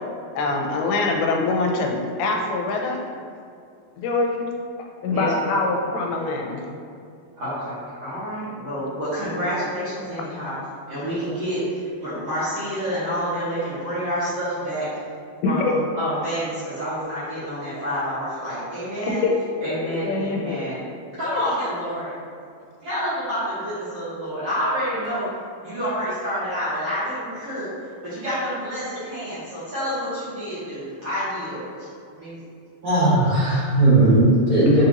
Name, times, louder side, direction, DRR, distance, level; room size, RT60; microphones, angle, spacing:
voice 1, 0.4-3.0 4.0-4.5 5.0-6.6 15.4-15.8 19.0-19.3 19.8-20.6 21.2-21.4, left 3 dB, 85° left, 1 dB, 2.4 m, -24 dB
voice 2, 5.1-5.6 7.4-10.5 10.9-14.9 15.4-19.2 19.6-20.8 21.2-22.1 22.8-25.3 25.6-27.7 28.0-31.9 32.2-32.4, equal, 60° right, -14 dB, 1.7 m, -28 dB
voice 3, 32.8-34.9, right 1 dB, 75° right, -13 dB, 1.3 m, -17 dB
6.8 x 2.6 x 2.8 m, 2.3 s
omnidirectional pair, 4.4 m